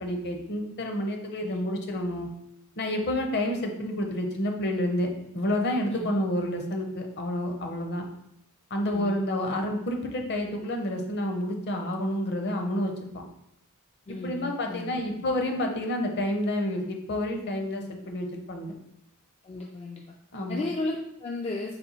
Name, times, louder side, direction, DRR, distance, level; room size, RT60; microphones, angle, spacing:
voice 1, 0.0-2.3 2.8-5.1 5.3-8.0 8.7-13.2 14.1-18.7 20.3-20.6, left 1 dB, 50° left, 3 dB, 0.7 m, -29 dB
voice 2, 5.9-6.2 8.8-9.2 14.1-15.2 19.4-20.0 20.5-21.7, left 2 dB, 30° left, -1 dB, 0.3 m, -35 dB
4.2 x 2.2 x 3.9 m, 0.78 s
head